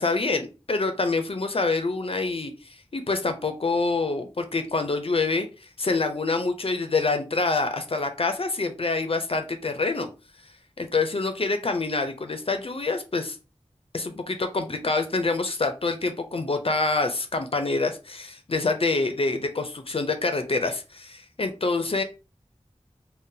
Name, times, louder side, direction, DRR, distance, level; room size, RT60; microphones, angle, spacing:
voice 1, 0.0-2.5 2.9-5.5 5.8-10.1 10.8-13.4 13.9-22.0, left 3 dB, 55° left, 7 dB, 0.4 m, -26 dB
3.7 x 2.1 x 2.6 m, 0.31 s
wide cardioid pair, 50°, 12 cm